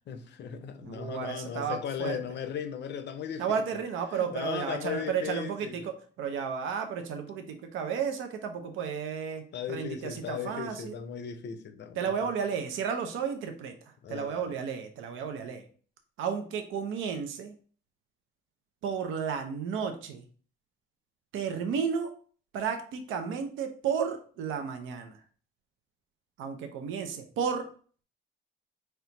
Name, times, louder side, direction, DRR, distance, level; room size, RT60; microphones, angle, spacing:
voice 1, 0.1-3.8 4.1-5.9 9.5-12.1 14.0-14.6, left 8 dB, 60° left, 0.6 m, -37 dB
voice 2, 0.8-2.2 3.4-9.4 9.7-11.0 12.0-13.7 14.1-15.7 16.2-17.5 18.8-20.2 21.3-22.1 22.5-25.2 26.4-27.7, right 6 dB, 85° right, 0.6 m, -33 dB
4.3 x 2.3 x 3.9 m
cardioid pair, 90°, 20 cm